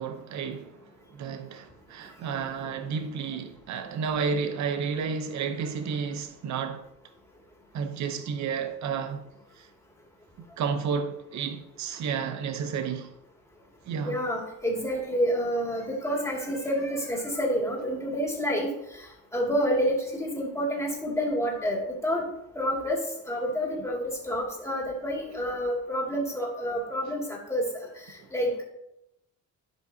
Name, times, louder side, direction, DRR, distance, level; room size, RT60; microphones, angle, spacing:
voice 1, 0.0-6.8 7.7-9.2 9.6-9.7 10.4-13.1 13.8-14.2, right 6 dB, 70° right, 0.8 m, -31 dB
voice 2, 14.0-22.2 22.5-23.0 23.3-28.6, equal, 10° left, 2.4 m, -29 dB
12.0 x 5.0 x 2.8 m
cardioid pair, 90°, 30 cm